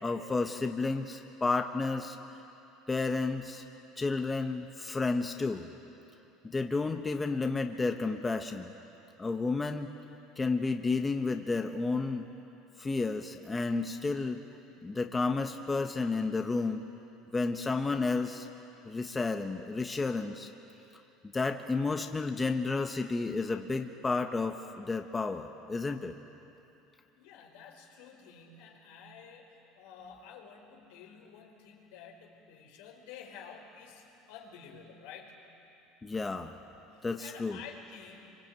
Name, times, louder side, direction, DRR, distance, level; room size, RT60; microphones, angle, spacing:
voice 1, 0.0-2.2 2.9-3.6 4.0-5.7 6.4-8.7 9.2-9.9 10.4-12.3 12.8-14.4 14.8-16.8 17.3-18.5 18.8-20.5 21.3-26.1 36.0-36.5 37.0-37.6, left 3 dB, 15° left, 5 dB, 1.3 m, -31 dB
voice 2, 27.1-35.4 36.9-38.4, left 6 dB, 85° left, 1 dB, 4.8 m, -50 dB
26.5 x 25.0 x 9.1 m, 2.9 s
supercardioid pair, 120°, 0 cm